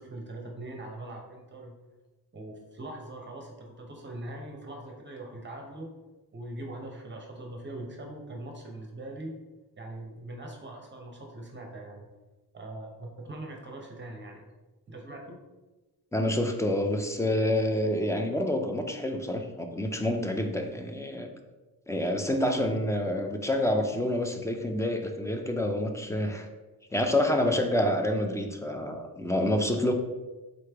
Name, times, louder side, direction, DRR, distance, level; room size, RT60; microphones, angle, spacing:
voice 1, 0.0-1.7 2.3-5.9 6.3-9.4 9.8-12.0 12.5-14.4 14.9-15.4, right 1 dB, 30° right, 0 dB, 0.8 m, -41 dB
voice 2, 16.1-21.3 21.9-26.5 26.9-29.9, left 1 dB, 10° left, 4 dB, 0.3 m, -28 dB
3.9 x 3.2 x 3.3 m, 1.2 s
cardioid pair, 115°, 40 cm